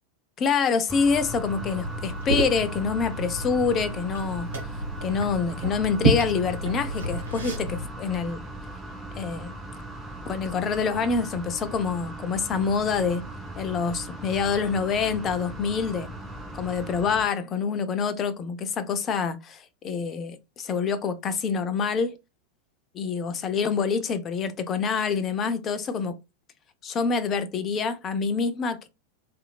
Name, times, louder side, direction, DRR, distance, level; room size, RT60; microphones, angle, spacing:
voice 1, 0.4-4.5 5.0-8.4 9.1-9.5 10.3-13.3 13.6-16.1 16.6-22.1 22.9-26.2 26.8-28.9, left 5 dB, 25° left, 0.5 m, -26 dB
sound 1, 0.9-17.3, right 1 dB, 5° right, 0.7 m, -39 dB
Liquid, 1.1-7.9, right 1 dB, 70° right, 0.9 m, -30 dB
2.8 x 2.6 x 2.3 m
figure-of-eight pair, 90°, 0 cm